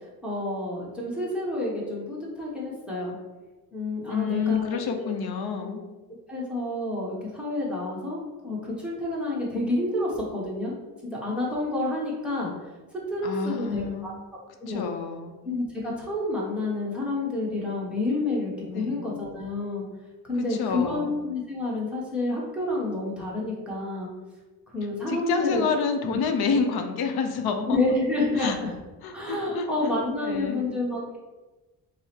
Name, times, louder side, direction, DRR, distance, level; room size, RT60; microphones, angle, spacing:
voice 1, 0.2-3.2 3.7-5.2 6.3-10.7 11.0-12.5 12.9-14.1 14.6-14.8 15.4-19.9 20.2-24.1 24.7-25.7 26.0-26.2 27.7-28.7 29.1-31.2, left 2 dB, 5° right, -5 dB, 0.8 m, -29 dB
voice 2, 4.1-5.8 13.2-14.2 14.7-15.4 18.7-19.0 20.4-21.1 25.1-27.8 28.4-28.6 29.0-29.7 30.2-30.6, left 5 dB, 80° left, 5 dB, 0.6 m, -28 dB
4.6 x 2.0 x 4.2 m, 1.2 s
cardioid pair, 170°, 37 cm